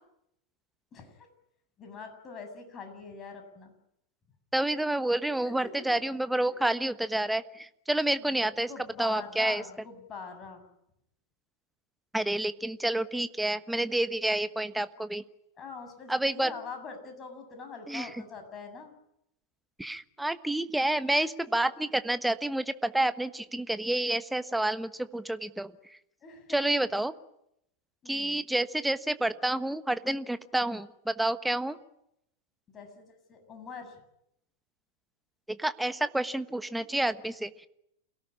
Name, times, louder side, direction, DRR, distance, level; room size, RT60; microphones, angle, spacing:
voice 1, 1.8-3.7 5.3-5.7 6.5-6.6 8.2-10.6 15.6-18.9 21.1-21.2 26.2-26.7 28.0-28.4 32.7-34.0, left 5 dB, 25° left, 6 dB, 7.7 m, -44 dB
voice 2, 4.5-8.7 9.0-9.6 12.1-15.2 16.1-16.5 17.9-18.1 19.8-25.7 26.5-27.1 28.1-31.8 35.6-37.7, right 1 dB, 5° right, 12 dB, 1.2 m, -29 dB
29.0 x 18.0 x 10.0 m, 0.80 s
figure-of-eight pair, 90°, 0 cm